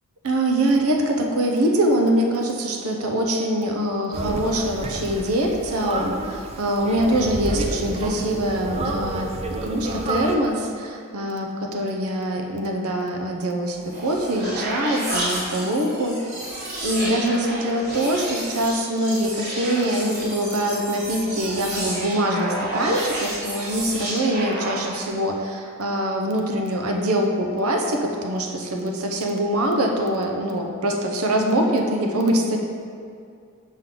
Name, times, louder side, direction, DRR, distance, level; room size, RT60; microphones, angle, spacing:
voice 1, 0.2-16.2 16.8-32.6, right 1 dB, 80° right, 2 dB, 0.8 m, -23 dB
sound 1, 4.1-10.4, right 2 dB, 30° right, 0.5 m, -30 dB
sound 2, 13.7-25.2, right 1 dB, 50° right, 1.5 m, -31 dB
5.4 x 3.8 x 5.8 m, 2.4 s
head